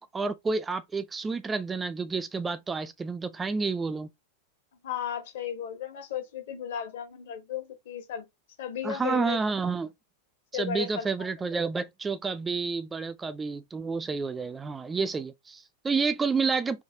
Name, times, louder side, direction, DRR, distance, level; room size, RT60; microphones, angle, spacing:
voice 1, 0.0-4.1 8.8-9.9 10.5-16.8, right 4 dB, 15° right, 0.4 m, -30 dB
voice 2, 4.8-8.3 8.6-9.4 10.5-11.3, left 9 dB, 55° left, 1.3 m, -35 dB
4.6 x 2.7 x 2.7 m
figure-of-eight pair, 90°, 0 cm